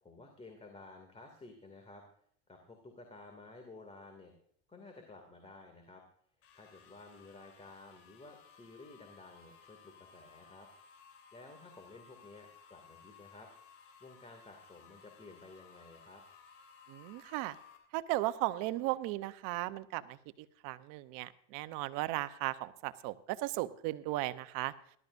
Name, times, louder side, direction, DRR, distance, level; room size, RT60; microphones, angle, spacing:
voice 1, 0.0-2.0 2.5-4.3 4.7-6.0 6.5-10.7 11.3-13.5 14.0-16.2, left 3 dB, 15° left, 4 dB, 2.4 m, -53 dB
sound 1, 6.4-17.8, left 6 dB, 90° left, 3.6 m, -59 dB
voice 2, 16.9-17.6 17.9-24.7, right 17 dB, 60° right, 13 dB, 0.8 m, -36 dB
18.5 x 12.5 x 2.6 m, 0.64 s
supercardioid pair, 100°, 36 cm